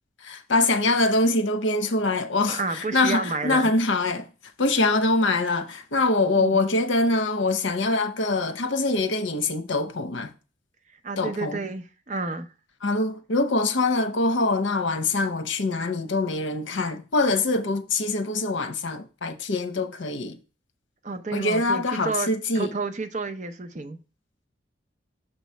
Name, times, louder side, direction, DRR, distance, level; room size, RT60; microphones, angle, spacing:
voice 1, 0.2-4.3 4.6-10.3 11.2-11.6 12.8-20.4 21.3-22.7, left 2 dB, 80° left, 0.8 m, -24 dB
voice 2, 2.5-3.7 6.4-6.6 11.0-12.5 21.0-24.0, right 3 dB, 40° right, 0.6 m, -30 dB
6.7 x 3.1 x 5.6 m
head